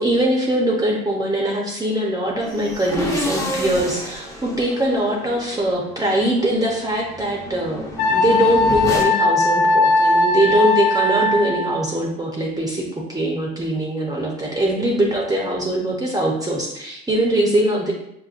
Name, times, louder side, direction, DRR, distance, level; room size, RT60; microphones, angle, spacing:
voice 1, 0.0-12.8 13.1-17.9, right 1 dB, 20° right, -2 dB, 0.7 m, -22 dB
sound 1, 2.4-9.0, left 1 dB, 15° left, 0.9 m, -30 dB
Wind instrument woodwind instrument, 8.0-11.8, left 2 dB, 85° left, 0.5 m, -18 dB
5.4 x 2.1 x 2.5 m, 0.77 s
cardioid pair, 90°, 20 cm